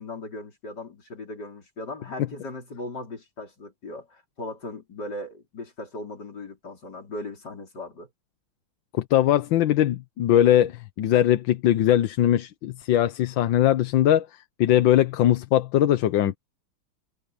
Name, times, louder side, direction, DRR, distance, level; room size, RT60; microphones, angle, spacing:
voice 1, 0.0-8.1, left 2 dB, 55° left, 4.9 m, -38 dB
voice 2, 8.9-14.3 14.6-16.4, left 12 dB, 75° left, 1.5 m, -20 dB
omnidirectional pair, 2.2 m